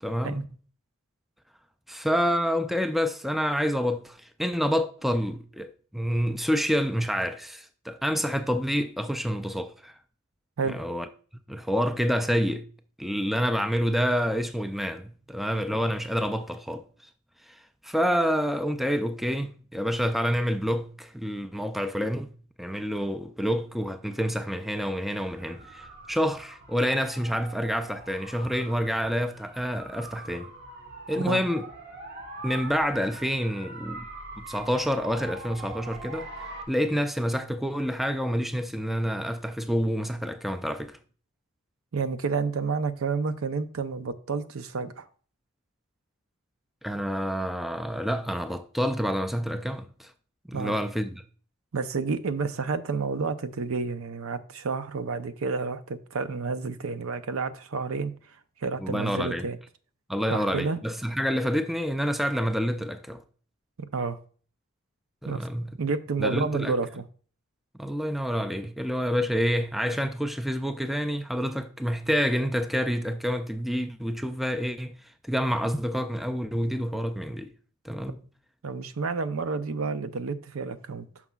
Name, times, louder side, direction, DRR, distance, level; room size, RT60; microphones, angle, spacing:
voice 1, 0.0-0.5 1.9-10.0 10.7-11.1 11.5-12.6 13.0-16.8 17.5-22.3 22.6-30.5 31.1-31.7 32.4-34.1 34.4-36.3 36.7-41.0 46.8-50.1 50.5-51.2 58.8-59.5 60.1-63.2 65.2-65.8 66.2-66.7 67.8-75.0 75.2-77.5 77.8-78.2, equal, ahead, 0.3 m, -28 dB
sound 1, 25.2-36.6, right 2 dB, 50° right, 1.4 m, -43 dB
voice 2, 41.9-45.1 50.5-50.7 51.7-58.1 58.6-59.6 60.3-60.8 63.9-64.2 65.2-65.5 65.8-67.0 78.6-81.1, right 4 dB, 75° right, 0.6 m, -30 dB
9.5 x 6.1 x 2.3 m
head